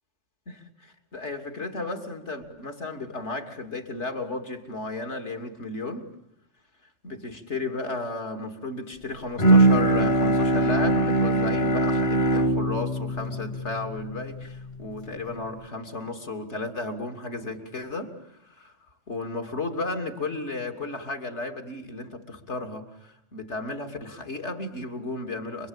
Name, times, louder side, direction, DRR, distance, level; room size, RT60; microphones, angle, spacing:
voice 1, 0.5-6.1 7.0-18.8 19.1-25.7, left 2 dB, 75° left, 3.2 m, -34 dB
Bowed string instrument, 9.4-14.8, right 2 dB, 45° left, 1.3 m, -22 dB
29.0 x 22.5 x 8.9 m
omnidirectional pair, 1.2 m